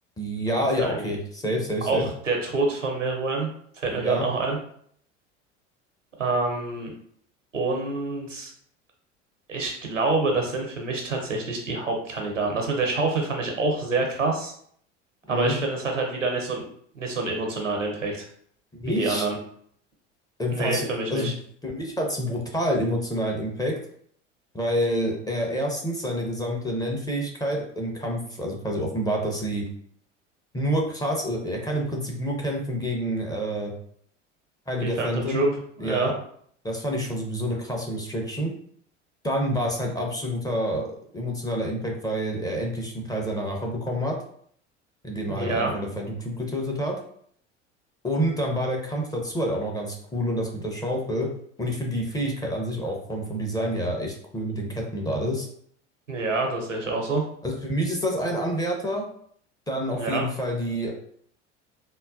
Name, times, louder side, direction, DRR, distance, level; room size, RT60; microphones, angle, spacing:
voice 1, 0.2-2.1 3.9-4.3 15.3-15.6 18.7-19.3 20.4-21.3 21.6-23.8 24.5-29.7 30.5-33.7 34.7-35.5 35.8-36.1 36.6-38.5 39.2-40.9 41.1-44.2 45.0-47.0 48.0-51.3 51.6-55.5 57.4-59.1 59.7-60.9, equal, 10° left, 0 dB, 0.6 m, -28 dB
voice 2, 0.8-1.1 1.8-3.5 3.8-4.6 6.2-6.9 7.5-8.5 9.5-14.5 15.3-16.6 16.9-18.3 18.9-19.4 20.5-21.3 34.8-35.5 35.8-36.1 45.3-45.7 56.1-57.2 59.9-60.2, right 3 dB, 90° right, 1 dB, 0.7 m, -26 dB
3.7 x 2.2 x 2.4 m, 0.62 s
figure-of-eight pair, 70°, 37 cm